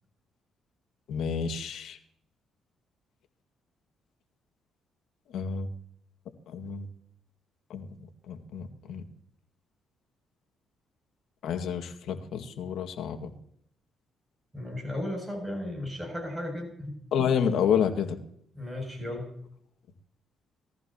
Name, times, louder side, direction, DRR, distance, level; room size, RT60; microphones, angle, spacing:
voice 1, 1.1-2.0 5.3-5.7 6.5-6.9 7.7-7.9 8.3-9.0 11.4-13.3 17.1-18.2, left 7 dB, 75° left, 7 dB, 2.0 m, -29 dB
voice 2, 14.5-17.0 18.5-19.3, left 1 dB, 5° right, 1 dB, 7.8 m, -35 dB
21.5 x 15.0 x 3.0 m, 0.67 s
cardioid pair, 90°, 0 cm